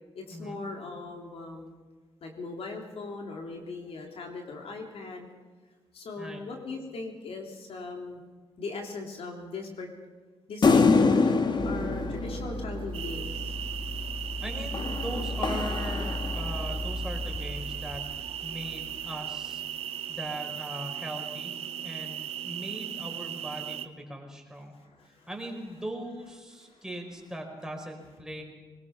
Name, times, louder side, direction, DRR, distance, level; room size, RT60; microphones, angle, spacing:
voice 1, 0.1-1.8 2.2-5.3 5.9-8.2 8.6-9.9 10.5-11.3 11.6-13.6 24.8-25.6 26.3-27.4 27.7-28.2, left 3 dB, 65° left, 2 dB, 3.3 m, -40 dB
sound 1, 10.6-13.3 14.7-16.8, left 4 dB, 45° left, 1.6 m, -25 dB
sound 2, 11.6-19.8 20.2-20.3, equal, 50° right, 1.7 m, -37 dB
sound 3, 12.9-23.9, right 10 dB, 75° right, 1.0 m, -37 dB
voice 2, 14.4-19.6 20.1-21.5 21.8-24.7 25.0-28.4, right 1 dB, 5° right, 1 dB, 5.0 m, -39 dB
22.0 x 20.0 x 5.9 m, 1.4 s
cardioid pair, 75°, 10 cm